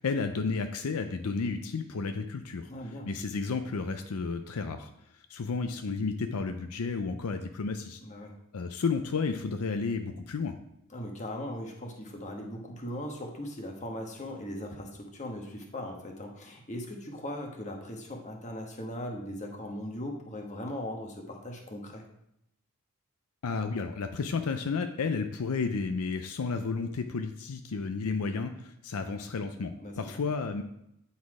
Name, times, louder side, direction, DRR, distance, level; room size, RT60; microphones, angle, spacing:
voice 1, 0.0-4.9 5.3-8.0 8.5-10.6 23.4-30.6, left 4 dB, 75° left, 7 dB, 0.5 m, -32 dB
voice 2, 2.7-3.1 8.0-8.3 10.9-22.0 29.8-30.0, left 1 dB, 30° left, 2 dB, 1.2 m, -39 dB
9.4 x 4.2 x 4.8 m, 0.79 s
head